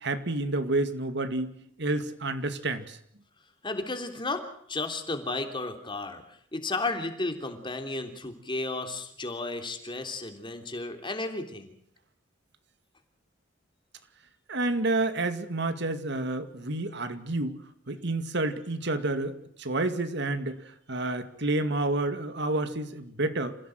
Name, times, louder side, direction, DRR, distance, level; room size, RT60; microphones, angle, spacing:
voice 1, 0.0-1.5 1.8-3.0 14.5-17.6 17.9-23.6, right 2 dB, 65° right, 9 dB, 2.3 m, -29 dB
voice 2, 3.6-4.4 4.7-6.2 6.5-11.7, left 2 dB, 25° left, 6 dB, 3.2 m, -33 dB
28.0 x 16.0 x 7.8 m, 0.68 s
head